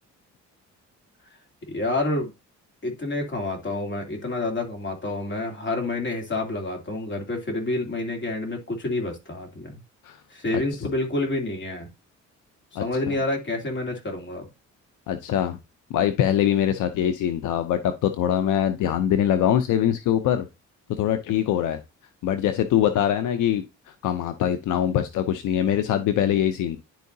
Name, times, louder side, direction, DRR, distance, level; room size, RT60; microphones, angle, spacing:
voice 1, 1.7-2.3 2.8-9.8 10.3-11.9 12.8-14.5, left 2 dB, 40° left, 2.9 m, -28 dB
voice 2, 12.8-13.2 15.1-15.6 15.9-20.4 21.0-21.8 22.2-23.6 24.0-26.8, left 10 dB, 80° left, 0.7 m, -23 dB
10.5 x 4.7 x 2.7 m
cardioid pair, 90°, 30 cm